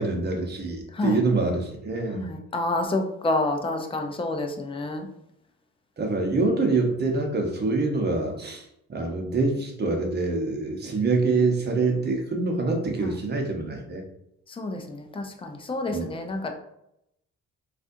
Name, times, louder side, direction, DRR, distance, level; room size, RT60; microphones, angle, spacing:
voice 1, 0.0-2.2 6.0-8.6 8.9-14.0 15.9-16.1, right 3 dB, 35° right, 2 dB, 0.9 m, -25 dB
voice 2, 2.1-5.1 13.0-13.2 14.5-16.5, left 2 dB, 20° left, 4 dB, 0.5 m, -29 dB
4.0 x 2.5 x 2.6 m, 0.80 s
cardioid pair, 90°, 30 cm